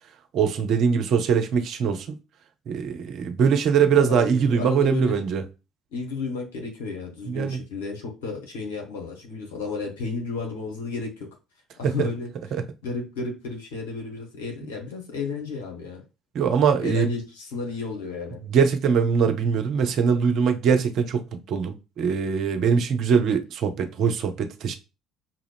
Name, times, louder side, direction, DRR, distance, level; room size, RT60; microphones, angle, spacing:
voice 1, 0.3-2.1 2.7-5.4 7.3-7.6 11.8-12.1 12.5-12.6 16.3-17.1 18.5-24.7, right 6 dB, 50° right, 0.6 m, -22 dB
voice 2, 3.9-5.2 5.9-11.3 11.8-12.3 12.8-16.0 16.8-18.4, left 4 dB, 70° left, 1.3 m, -32 dB
5.7 x 2.4 x 3.4 m
figure-of-eight pair, 55°, 0 cm